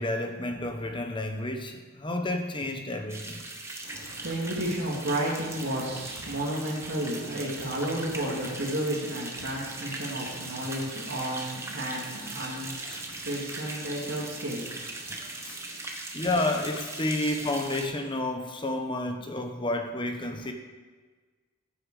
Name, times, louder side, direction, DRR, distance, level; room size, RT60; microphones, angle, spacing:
voice 1, 0.0-3.5 3.9-4.1 12.8-13.1 15.1-15.6 16.1-20.5, left 2 dB, 20° left, 5 dB, 0.9 m, -31 dB
sound 1, 3.1-17.8, right 2 dB, 10° right, 1.2 m, -39 dB
voice 2, 3.8-15.9, right 1 dB, 55° right, -5 dB, 2.4 m, -32 dB
14.5 x 9.0 x 4.8 m, 1.4 s
head